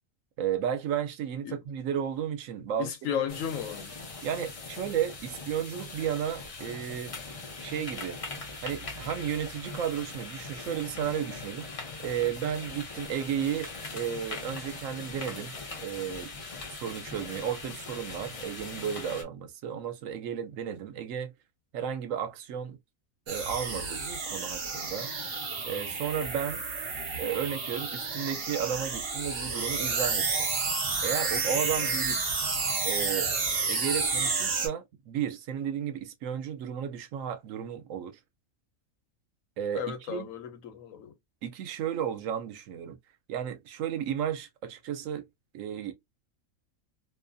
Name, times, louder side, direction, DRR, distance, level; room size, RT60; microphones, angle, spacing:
voice 1, 0.4-3.1 4.2-7.2 7.6-8.2 8.6-13.7 13.9-15.5 15.8-16.3 16.8-21.3 21.7-22.8 23.3-25.1 25.6-26.6 27.2-30.5 31.0-32.3 32.8-33.3 33.7-38.2 39.6-39.8 40.1-40.3 41.4-43.0 43.3-45.3 45.5-45.9, right 9 dB, 75° right, 1.0 m, -33 dB
voice 2, 2.8-3.9 31.8-32.0 39.7-41.1, left 8 dB, 75° left, 1.1 m, -34 dB
sound 1, 3.3-19.2, left 3 dB, 45° left, 0.5 m, -41 dB
sound 2, 23.3-34.7, right 4 dB, 50° right, 1.0 m, -30 dB
2.6 x 2.5 x 2.2 m
omnidirectional pair, 1.4 m